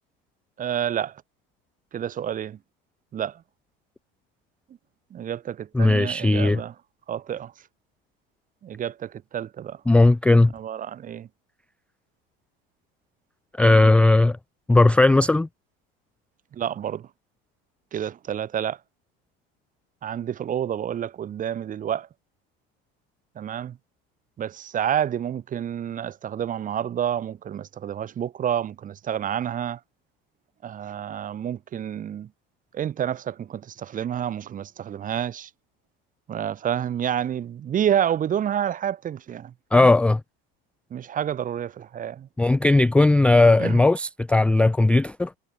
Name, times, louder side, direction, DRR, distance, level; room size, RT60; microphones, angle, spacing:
voice 1, 0.6-1.2 1.9-2.6 3.1-3.4 5.1-6.7 7.1-7.5 8.6-9.8 10.5-11.3 13.7-13.9 16.5-17.1 17.9-18.8 20.0-22.1 23.4-23.8 24.4-29.8 30.6-32.3 32.7-35.5 36.3-39.9 40.9-42.3 43.6-43.8, right 9 dB, 25° right, 1.1 m, -29 dB
voice 2, 5.7-6.6 9.9-10.5 13.6-14.4 14.7-15.5 39.7-40.2 42.4-45.3, left 2 dB, 5° left, 0.4 m, -17 dB
supercardioid pair, 125°, 29 cm